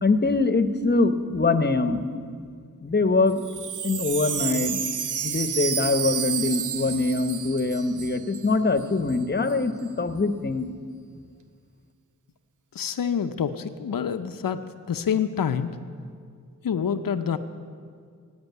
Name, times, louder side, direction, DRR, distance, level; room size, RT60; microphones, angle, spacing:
voice 1, 0.0-2.0 2.8-3.4 3.8-4.8 5.2-10.7, left 3 dB, 30° left, 10 dB, 0.9 m, -23 dB
Wind chime, 3.3-8.5 8.8-8.9 9.1-9.5, right 8 dB, 60° right, 0.6 m, -30 dB
voice 2, 12.7-14.6 14.9-15.8 16.6-17.4, left 7 dB, 75° left, 9 dB, 0.7 m, -27 dB
16.5 x 8.8 x 9.2 m, 2.1 s
wide cardioid pair, 100°, 34 cm